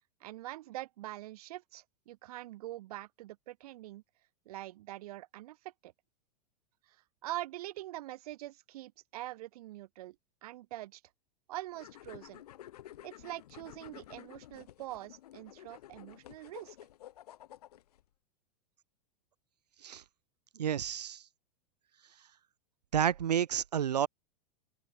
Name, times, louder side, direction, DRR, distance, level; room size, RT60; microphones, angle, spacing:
voice 1, 0.2-4.0 4.5-5.9 7.2-10.2 10.4-11.0 11.5-12.4 13.0-16.8, right 16 dB, 65° right, 2.0 m, -44 dB
sound 1, 11.7-18.0, left 13 dB, 75° left, 6.0 m, -52 dB
voice 2, 20.6-21.2 22.9-24.1, right 9 dB, 90° right, 0.7 m, -30 dB
open air
hypercardioid pair, 105°, 20 cm